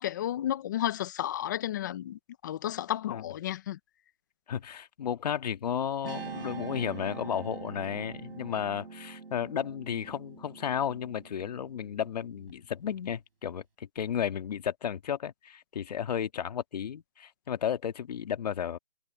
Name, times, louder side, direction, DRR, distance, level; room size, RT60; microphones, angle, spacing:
voice 1, 0.0-3.8, left 12 dB, 20° left, 0.8 m, -32 dB
voice 2, 4.5-18.8, left 8 dB, 45° left, 1.8 m, -33 dB
Guitar, 6.0-12.5, right 4 dB, 80° right, 7.0 m, -44 dB
hypercardioid pair, 160°, 29 cm